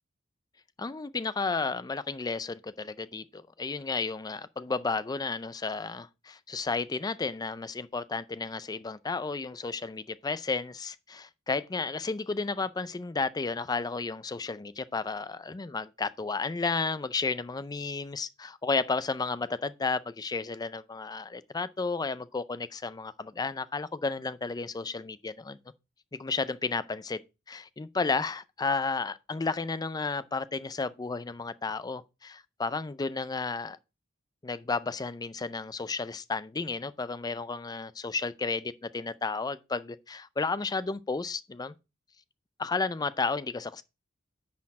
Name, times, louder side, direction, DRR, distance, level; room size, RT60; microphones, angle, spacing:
voice 1, 0.8-25.6 26.1-27.2 27.5-33.8 34.4-41.7 42.6-43.8, left 4 dB, 20° left, 0.4 m, -32 dB
9.7 x 4.3 x 4.6 m
head